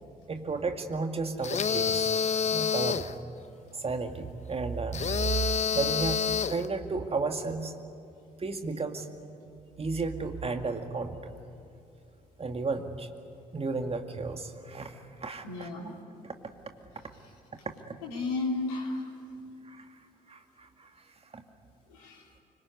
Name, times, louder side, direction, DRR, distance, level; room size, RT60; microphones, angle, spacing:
voice 1, 0.3-2.1 2.5-3.2 3.7-5.1 5.7-7.7 8.4-9.1 9.8-11.4 12.4-13.1 13.5-15.7 16.2-16.3 17.9-18.0 19.7-19.9 20.3-20.9 21.3-21.4, right 3 dB, 30° right, 6 dB, 2.3 m, -33 dB
sound 1, 1.4-3.1 4.9-6.7, left 7 dB, 35° left, 0.9 m, -28 dB
voice 2, 15.4-15.9 18.0-19.4 21.9-22.3, left 3 dB, 70° left, 0 dB, 3.2 m, -34 dB
25.0 x 22.5 x 9.8 m, 2.5 s
figure-of-eight pair, 45°, 20 cm